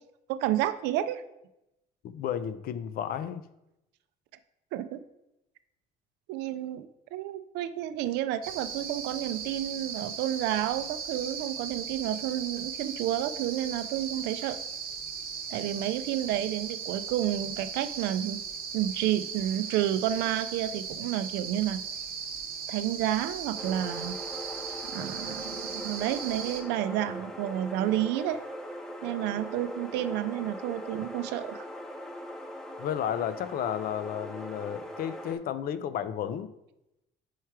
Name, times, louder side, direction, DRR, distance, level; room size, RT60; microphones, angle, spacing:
voice 1, 0.3-1.2 4.7-5.0 6.3-14.6 15.5-18.4 18.7-21.8 22.7-24.1 24.9-28.4 29.0-31.7, right 12 dB, 90° right, 12 dB, 0.4 m, -30 dB
voice 2, 2.0-3.4 32.8-36.5, left 9 dB, 60° left, 13 dB, 0.4 m, -32 dB
sound 1, 8.4-26.6, right 6 dB, 60° right, 0.8 m, -38 dB
sound 2, 23.6-35.3, equal, 5° left, 0.7 m, -40 dB
4.6 x 4.6 x 4.6 m, 0.89 s
cardioid pair, 110°, 17 cm